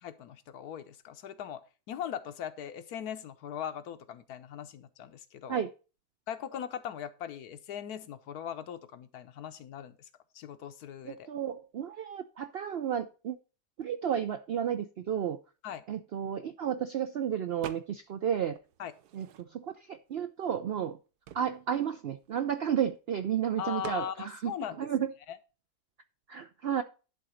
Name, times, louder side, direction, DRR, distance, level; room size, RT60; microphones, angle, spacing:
voice 1, 0.0-1.6 1.9-5.6 6.3-10.1 10.3-11.3 15.6-15.8 18.8-18.9 23.6-24.8 25.3-25.4, left 9 dB, 80° left, 11 dB, 1.3 m, -39 dB
voice 2, 11.0-13.4 13.8-15.4 15.9-18.6 19.1-21.0 21.3-25.1 26.3-26.8, right 9 dB, 70° right, 10 dB, 0.5 m, -32 dB
sound 1, 17.6-18.2 18.5-19.8 20.4-20.5 20.7-23.0 23.8-24.1, right 10 dB, 85° right, 1.3 m, -47 dB
11.0 x 3.9 x 6.3 m, 0.33 s
omnidirectional pair, 1.6 m